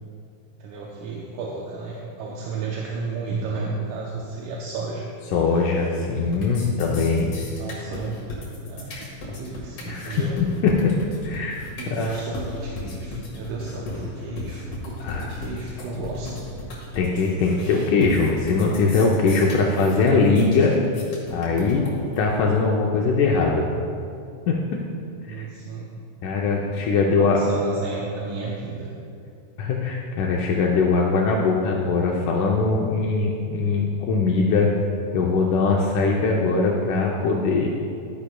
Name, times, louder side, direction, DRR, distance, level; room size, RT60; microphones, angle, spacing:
voice 1, 0.6-5.1 6.5-7.0 7.5-8.2 8.7-10.4 11.8-16.4 25.2-25.9 27.0-28.9, right 4 dB, 75° right, -3 dB, 2.2 m, -33 dB
voice 2, 5.3-7.3 8.9-9.0 9.9-10.9 11.2-11.5 11.9-12.2 15.0-15.4 17.0-20.8 21.3-21.9 22.2-23.7 24.5-24.8 25.3-25.4 26.2-27.4 29.6-34.7 35.1-37.7, left 4 dB, 75° left, -1 dB, 2.1 m, -21 dB
sound 1, 5.5-6.0 6.2-22.2, left 2 dB, 50° left, 2.4 m, -36 dB
12.0 x 10.0 x 2.3 m, 2.4 s
omnidirectional pair, 3.8 m